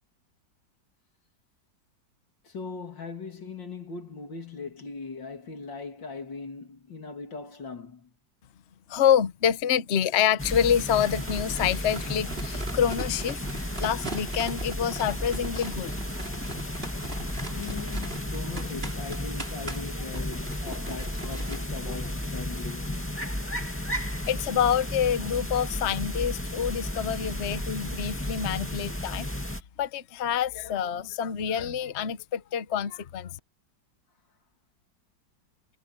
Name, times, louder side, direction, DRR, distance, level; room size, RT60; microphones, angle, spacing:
voice 1, 2.5-8.1 17.5-23.1, left 4 dB, 85° left, 3.3 m, -39 dB
voice 2, 8.9-15.9 24.2-29.3 29.8-33.3, left 8 dB, 45° left, 1.0 m, -27 dB
sound 1, 10.4-29.6, left 1 dB, 5° left, 2.2 m, -33 dB
sound 2, 11.0-22.6, right 2 dB, 30° right, 4.4 m, -41 dB
omnidirectional pair, 1.9 m